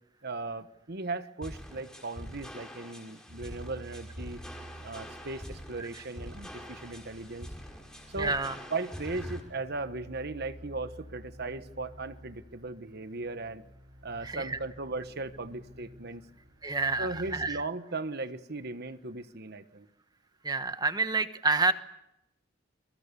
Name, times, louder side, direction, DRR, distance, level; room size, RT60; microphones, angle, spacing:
voice 1, 0.2-4.4 4.8-7.5 8.1-8.4 8.7-13.6 14.0-16.2 17.0-19.9, right 3 dB, 55° right, 11 dB, 1.3 m, -37 dB
sound 1, 1.4-9.4, equal, 5° left, 5.6 m, -44 dB
sound 2, 3.3-17.5, right 1 dB, 80° right, 7.3 m, -51 dB
voice 2, 8.2-8.6 14.2-14.6 16.6-17.6 20.4-21.7, right 3 dB, 20° right, 10 dB, 1.2 m, -28 dB
29.5 x 23.5 x 6.9 m, 0.87 s
head